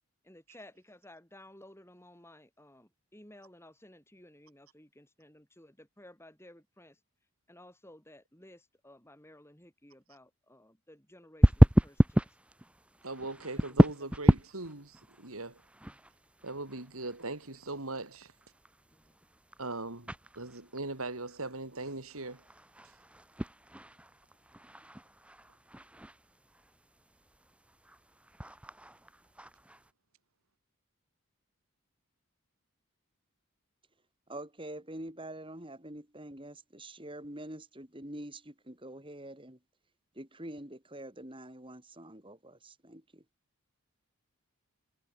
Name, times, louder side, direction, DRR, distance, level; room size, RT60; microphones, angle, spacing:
voice 1, 0.3-7.0 7.5-12.3 13.9-14.1 15.8-15.9, left 1 dB, 10° left, 5.2 m, -55 dB
sound 1, 11.4-29.9, equal, 5° right, 1.0 m, -31 dB
voice 2, 13.0-15.6 16.4-18.3 19.6-22.4, right 2 dB, 75° right, 3.6 m, -40 dB
voice 3, 34.3-39.6 40.1-43.2, right 1 dB, 25° right, 4.8 m, -45 dB
head